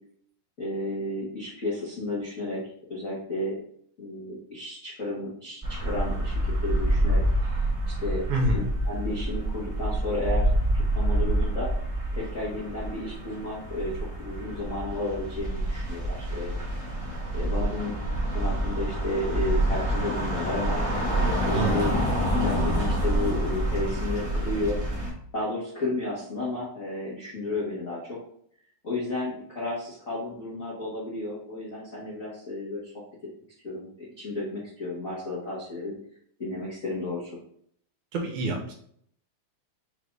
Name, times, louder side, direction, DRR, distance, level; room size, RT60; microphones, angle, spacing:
voice 1, 0.6-2.6 2.9-3.6 4.0-7.2 8.0-8.2 8.5-10.5 10.7-11.7 12.1-16.6 17.3-17.9 18.3-20.8 21.1-21.9 22.4-24.8 25.3-28.2 28.8-32.9 33.6-35.9 36.4-37.3, left 2 dB, 65° left, -7 dB, 0.8 m, -32 dB
sound 1, 5.6-25.1, right 1 dB, 50° right, 0.4 m, -27 dB
voice 2, 8.3-8.6 21.5-21.8 38.1-38.7, right 2 dB, 75° right, 1 dB, 2.3 m, -27 dB
5.8 x 2.6 x 3.4 m, 0.66 s
omnidirectional pair, 3.6 m